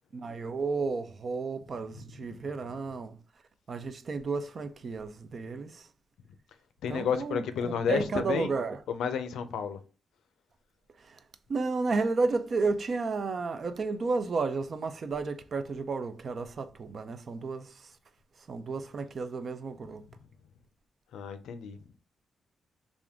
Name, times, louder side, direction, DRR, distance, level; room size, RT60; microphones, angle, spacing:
voice 1, 0.1-3.2 3.7-5.9 6.9-8.8 11.0-11.2 11.5-18.0 18.4-20.0, right 4 dB, 50° right, 0.5 m, -32 dB
voice 2, 6.8-8.5 8.9-9.8 21.1-21.8, left 7 dB, 85° left, 0.5 m, -31 dB
3.5 x 2.5 x 3.5 m
cardioid pair, 75°, 0 cm